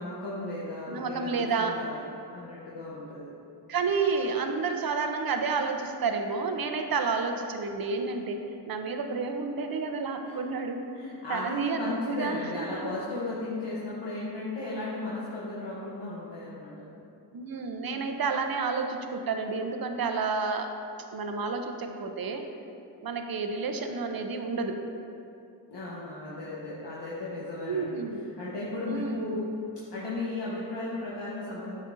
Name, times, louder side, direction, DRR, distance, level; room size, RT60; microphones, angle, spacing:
voice 1, 0.0-3.3 10.2-10.4 10.9-17.0 25.7-28.0 28.4-29.4 29.9-31.8, left 2 dB, 75° left, -7 dB, 1.0 m, -35 dB
voice 2, 0.9-1.8 3.7-10.9 11.3-12.9 17.3-20.7 21.1-22.4 23.0-24.8 27.7-28.2 28.9-29.4, right 4 dB, 55° right, 5 dB, 0.6 m, -30 dB
7.9 x 5.3 x 2.6 m, 2.7 s
cardioid pair, 45°, 43 cm